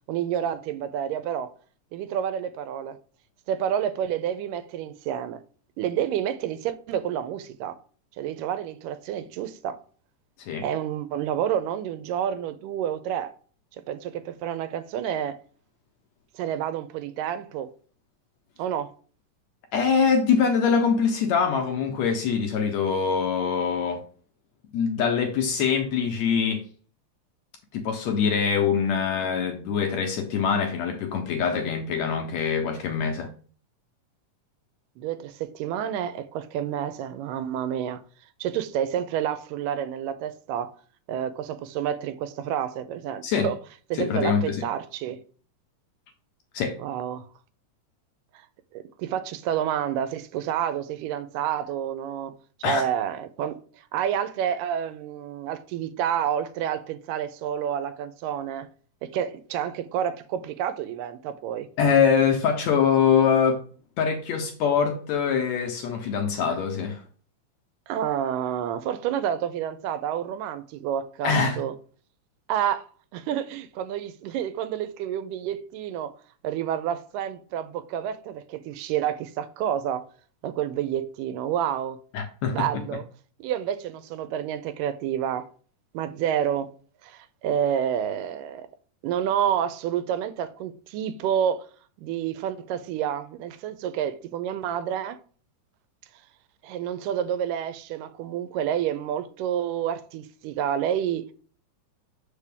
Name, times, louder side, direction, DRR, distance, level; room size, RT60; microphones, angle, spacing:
voice 1, 0.1-1.5 1.9-3.0 3.5-5.4 5.8-7.8 8.2-9.8 10.6-13.3 13.9-15.4 16.4-17.7 18.6-18.9 35.0-38.0 38.4-40.7 41.1-43.6 43.9-45.2 46.8-47.3 48.7-52.3 52.6-53.6 53.9-58.7 59.0-61.7 66.5-66.6 67.9-71.7 72.5-72.9 73.1-76.1 76.4-80.0 80.4-82.0 82.5-83.0 83.4-85.5 85.9-86.7 87.0-88.7 89.0-91.6 92.0-95.2 96.6-101.3, right 9 dB, 85° right, 2.2 m, -29 dB
voice 2, 19.7-24.0 24.7-26.6 27.7-33.3 43.2-43.5 44.0-44.6 46.5-46.8 52.6-52.8 61.8-63.6 64.0-67.0 71.2-71.6 82.1-82.7, left 6 dB, 75° left, 1.7 m, -23 dB
6.7 x 5.0 x 3.5 m
omnidirectional pair, 3.7 m